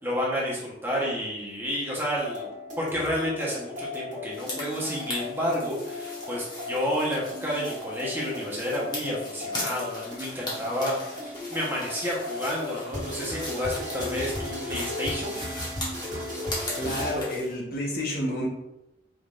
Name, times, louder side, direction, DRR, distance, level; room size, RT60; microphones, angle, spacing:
voice 1, 0.0-2.5 2.8-15.4, equal, 10° right, -4 dB, 1.1 m, -30 dB
sound 1, 2.2-17.1, left 2 dB, 45° right, 1.5 m, -36 dB
sound 2, 4.3-17.5, left 1 dB, 25° left, 1.3 m, -39 dB
voice 2, 16.7-18.5, equal, 55° left, -3 dB, 1.2 m, -29 dB
4.9 x 3.8 x 2.5 m, 0.88 s
head